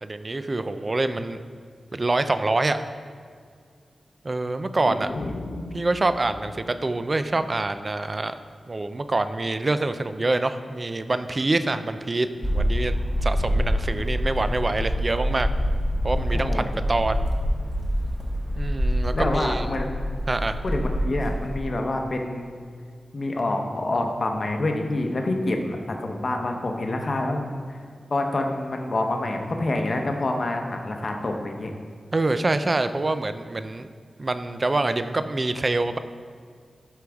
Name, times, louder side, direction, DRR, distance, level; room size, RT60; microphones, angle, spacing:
voice 1, 0.0-1.4 1.9-2.8 4.2-5.1 5.7-8.3 8.7-15.5 16.0-17.2 18.5-19.7 20.3-20.6 32.1-33.9 34.2-36.0, right 2 dB, 30° right, 10 dB, 0.3 m, -26 dB
voice 2, 4.9-5.3 16.3-16.7 19.1-19.9 20.6-22.5 23.1-27.8 28.1-31.7, left 2 dB, 40° left, 3 dB, 0.8 m, -27 dB
sound 1, 5.1-8.2, left 2 dB, 75° left, 0.7 m, -38 dB
sound 2, 12.4-21.6, equal, 5° left, 0.9 m, -26 dB
12.5 x 4.7 x 3.5 m, 2.1 s
wide cardioid pair, 170°, 0 cm